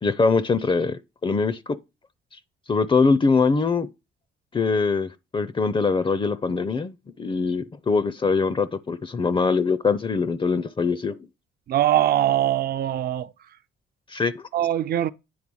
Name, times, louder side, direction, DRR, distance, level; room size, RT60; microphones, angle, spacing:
voice 1, 0.0-1.8 2.7-3.9 4.5-11.2 14.1-14.3, left 4 dB, 25° left, 0.5 m, -23 dB
voice 2, 11.7-13.3 14.5-15.1, right 12 dB, 50° right, 0.5 m, -22 dB
9.5 x 3.4 x 6.1 m
cardioid pair, 90°, 20 cm